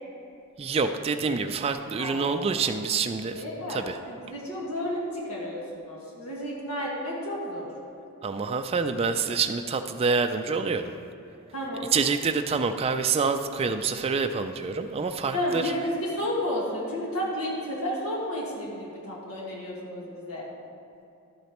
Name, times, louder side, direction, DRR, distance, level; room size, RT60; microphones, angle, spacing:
voice 1, 0.6-3.4 3.7-4.0 8.2-10.9 11.9-15.7, right 5 dB, 25° right, 6 dB, 0.3 m, -27 dB
voice 2, 2.0-2.3 3.3-7.7 11.5-11.9 15.3-20.4, equal, 85° left, -4 dB, 1.8 m, -32 dB
12.0 x 8.3 x 3.0 m, 2.8 s
head